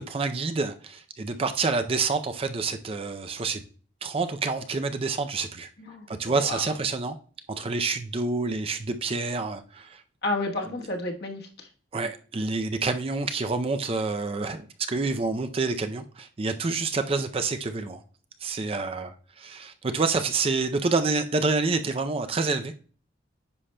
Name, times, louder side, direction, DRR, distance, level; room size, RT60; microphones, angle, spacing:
voice 1, 0.0-3.6 4.0-5.7 6.1-7.2 7.5-10.0 11.9-18.0 18.4-22.7, right 3 dB, 30° right, 0.4 m, -28 dB
voice 2, 5.8-6.6 10.2-11.7, left 2 dB, 55° left, 1.2 m, -31 dB
9.8 x 5.7 x 2.2 m
head